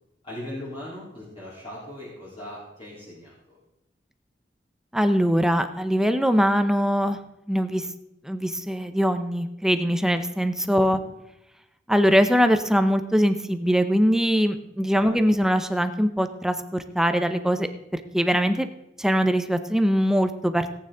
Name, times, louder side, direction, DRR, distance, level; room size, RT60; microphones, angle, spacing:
voice 1, 0.2-3.6 10.8-11.1 15.0-15.2, left 1 dB, 30° left, -8 dB, 3.5 m, -39 dB
voice 2, 4.9-7.2 7.5-7.9 8.2-11.0 11.9-18.7 19.0-20.7, equal, 5° right, 8 dB, 0.6 m, -22 dB
18.0 x 9.0 x 3.8 m, 0.88 s
head